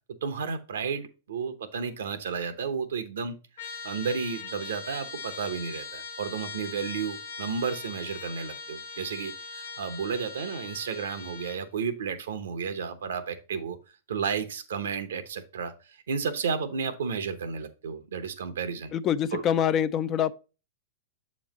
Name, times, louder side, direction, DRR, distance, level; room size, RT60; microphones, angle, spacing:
voice 1, 0.2-3.3 3.8-13.8 14.1-15.7 16.1-18.9 19.3-19.4, right 6 dB, 80° right, 0.8 m, -32 dB
Trumpet, 3.6-11.6, left 4 dB, 75° left, 0.9 m, -41 dB
voice 2, 18.9-20.3, left 9 dB, 35° left, 0.4 m, -25 dB
7.1 x 3.1 x 5.1 m
hypercardioid pair, 110°, 0 cm